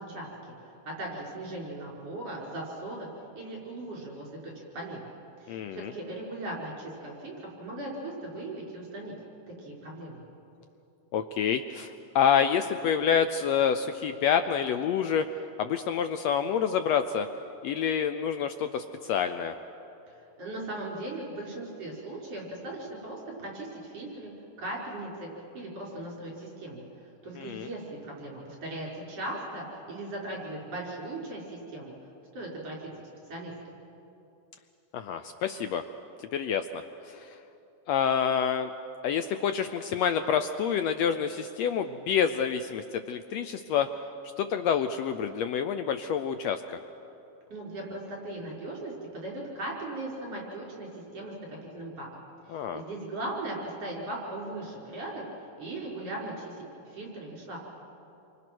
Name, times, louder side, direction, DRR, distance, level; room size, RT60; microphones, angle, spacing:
voice 1, 0.0-3.1 3.3-5.1 5.4-9.1 9.6-10.2 20.1-24.3 24.6-25.3 25.5-26.8 27.2-31.9 32.3-32.9 33.3-33.7 47.5-52.1 52.5-55.2 55.6-56.6 56.9-57.6, right 1 dB, 55° right, -3 dB, 6.4 m, -38 dB
voice 2, 5.5-5.9 11.1-15.3 15.6-17.3 17.6-19.5 27.4-27.7 34.9-35.8 36.2-37.3 37.9-38.7 39.0-43.9 44.4-46.8 52.5-52.8, left 7 dB, 75° left, 9 dB, 1.7 m, -28 dB
28.5 x 24.5 x 6.1 m, 2.8 s
omnidirectional pair, 3.4 m